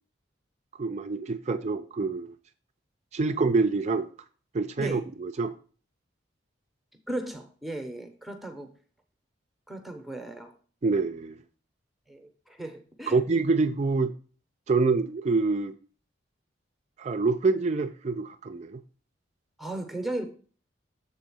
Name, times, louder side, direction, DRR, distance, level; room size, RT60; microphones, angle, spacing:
voice 1, 0.8-2.3 3.1-4.1 4.5-5.5 10.8-11.4 13.1-14.1 14.7-15.7 17.0-18.8, right 3 dB, 35° right, 0.3 m, -26 dB
voice 2, 7.1-8.7 9.7-10.5 12.1-13.2 19.6-20.3, right 1 dB, ahead, 0.7 m, -36 dB
7.1 x 3.9 x 6.1 m
head